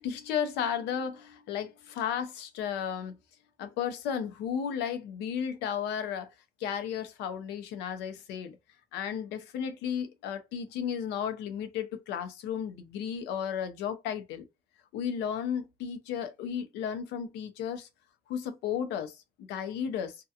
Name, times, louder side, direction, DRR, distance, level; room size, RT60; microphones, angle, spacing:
voice 1, 0.0-3.2 3.6-6.3 6.6-8.6 8.9-14.5 14.9-17.9 18.3-20.2, left 8 dB, 85° left, 0.6 m, -34 dB
2.8 x 2.2 x 2.4 m
cardioid pair, 110°, 17 cm